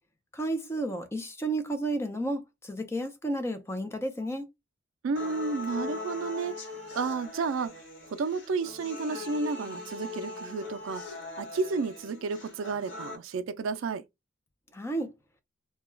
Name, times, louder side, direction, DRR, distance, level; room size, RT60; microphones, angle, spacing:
voice 1, 0.3-4.5 14.7-15.1, right 1 dB, 10° left, 0.5 m, -32 dB
voice 2, 5.0-6.6 6.9-14.0, right 4 dB, 70° right, 0.4 m, -32 dB
sound 1, 5.2-13.2, left 3 dB, 60° left, 1.2 m, -40 dB
2.2 x 2.2 x 3.0 m
head